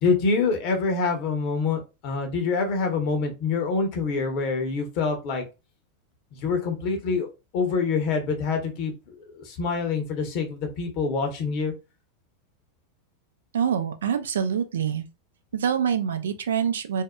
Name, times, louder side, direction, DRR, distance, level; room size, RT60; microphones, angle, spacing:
voice 1, 0.0-5.4 6.3-7.3 7.5-9.1 9.4-11.7, left 4 dB, 55° left, 0.9 m, -26 dB
voice 2, 13.5-15.0 15.5-17.0, right 8 dB, 80° right, 0.4 m, -25 dB
2.6 x 2.1 x 2.2 m
hypercardioid pair, 95°, 0 cm